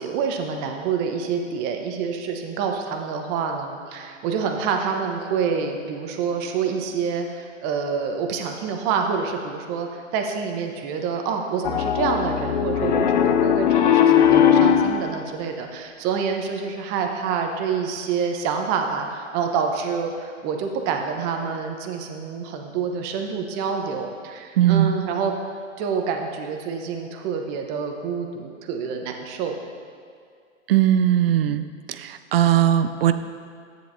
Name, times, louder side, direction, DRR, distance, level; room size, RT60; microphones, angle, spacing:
voice 1, 0.0-25.3 25.8-29.6, right 6 dB, 25° right, 3 dB, 0.9 m, -27 dB
Piano, 11.6-15.1, left 9 dB, 35° left, 0.5 m, -18 dB
voice 2, 24.6-24.9 30.7-31.6 32.0-33.1, right 11 dB, 50° right, 11 dB, 0.5 m, -18 dB
13.5 x 9.4 x 2.7 m, 2.2 s
hypercardioid pair, 135°, 39 cm